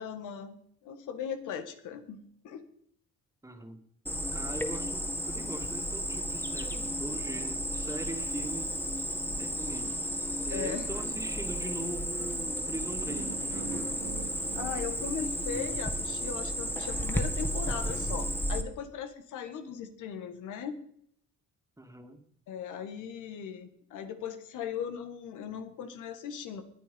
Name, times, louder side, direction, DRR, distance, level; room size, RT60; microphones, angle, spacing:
voice 1, 0.0-2.7 10.5-10.9 14.6-20.8 22.5-26.6, left 7 dB, 85° left, 8 dB, 2.0 m, -38 dB
voice 2, 3.4-3.9 4.3-8.8 9.4-10.1 10.4-13.9 21.8-22.2, right 2 dB, 10° right, 5 dB, 2.2 m, -41 dB
Cricket, 4.1-18.6, equal, 5° left, 1.8 m, -33 dB
sound 1, 12.9-16.0, right 6 dB, 80° right, 3.4 m, -45 dB
20.5 x 10.5 x 5.4 m, 0.67 s
cardioid pair, 100°, 30 cm